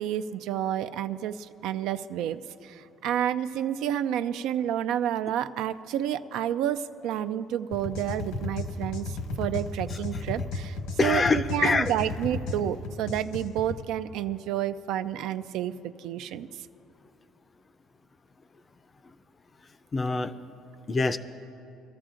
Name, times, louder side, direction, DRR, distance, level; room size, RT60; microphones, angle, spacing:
voice 1, 0.0-16.5, right 10 dB, 75° right, 12 dB, 0.4 m, -30 dB
sound 1, 7.7-13.8, left 3 dB, 85° left, 1.2 m, -34 dB
voice 2, 9.9-10.2 11.0-11.9 19.9-20.3 20.9-21.2, left 3 dB, 25° left, 11 dB, 0.5 m, -25 dB
23.0 x 13.5 x 2.5 m, 2.7 s
cardioid pair, 135°, 0 cm